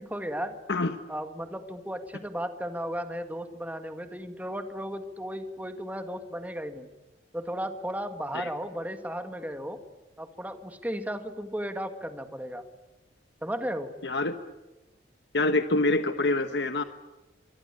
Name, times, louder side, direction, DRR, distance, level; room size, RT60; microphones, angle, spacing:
voice 1, 0.0-0.6 1.1-6.9 7.3-9.8 10.2-12.6 13.4-13.9, equal, 10° right, 8 dB, 1.8 m, -35 dB
voice 2, 14.0-14.3 15.3-16.8, left 2 dB, 75° left, 9 dB, 1.2 m, -25 dB
25.5 x 23.0 x 9.8 m, 1.1 s
head